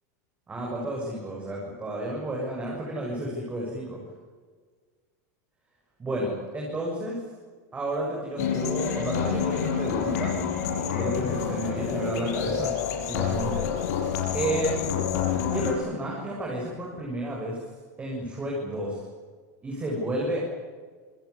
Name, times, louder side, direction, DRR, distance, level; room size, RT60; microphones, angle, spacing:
voice 1, 0.5-4.0 6.0-7.2 7.7-10.4 10.9-12.8 13.1-14.9 15.5-17.6 18.0-19.0 19.6-20.4, right 1 dB, 15° right, -2 dB, 7.2 m, -31 dB
sound 1, 8.4-15.7, left 7 dB, 70° left, 7.0 m, -28 dB
27.0 x 17.0 x 9.9 m, 1.5 s
supercardioid pair, 150°, 9 cm